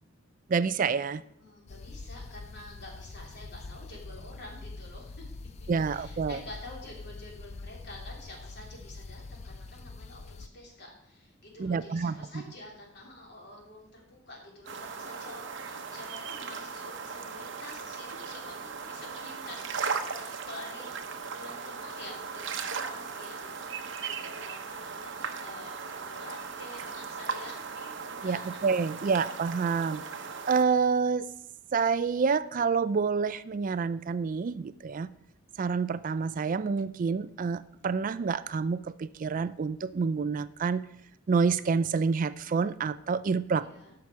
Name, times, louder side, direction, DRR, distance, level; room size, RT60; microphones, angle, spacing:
voice 1, 0.5-1.2 5.7-6.4 11.6-12.1 28.2-30.0 30.5-31.3 31.7-35.1 35.6-40.8 41.3-43.7, right 5 dB, 40° right, 15 dB, 0.4 m, -28 dB
voice 2, 1.1-5.3 5.9-29.1 29.6-29.9 43.6-43.9, left 1 dB, 55° left, -1 dB, 3.0 m, -48 dB
sound 1, 1.7-10.5, left 3 dB, 35° left, 0.4 m, -44 dB
sound 2, 14.7-30.6, right 5 dB, 65° right, 0.9 m, -38 dB
14.0 x 5.9 x 4.7 m, 0.74 s
head